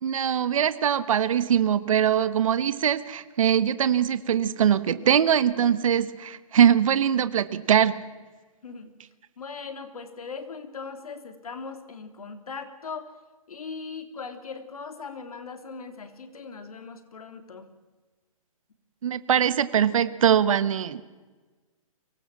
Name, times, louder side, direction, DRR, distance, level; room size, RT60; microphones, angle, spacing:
voice 1, 0.0-7.9 19.0-21.0, right 9 dB, 65° right, 14 dB, 1.3 m, -22 dB
voice 2, 9.4-13.1 13.5-17.7, left 5 dB, 85° left, 8 dB, 3.2 m, -39 dB
24.0 x 18.5 x 7.5 m, 1.3 s
hypercardioid pair, 155°, 18 cm